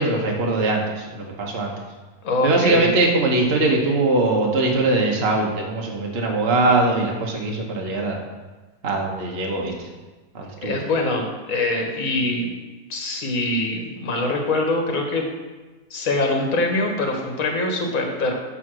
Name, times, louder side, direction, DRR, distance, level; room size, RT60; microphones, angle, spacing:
voice 1, 0.0-1.7 2.4-8.2 8.8-9.9 10.3-10.8, right 2 dB, 45° right, -1 dB, 1.2 m, -21 dB
voice 2, 2.2-2.9 10.6-12.5 12.9-15.3 15.9-18.3, left 2 dB, 60° left, 2 dB, 1.7 m, -23 dB
11.0 x 3.8 x 6.2 m, 1.3 s
omnidirectional pair, 1.6 m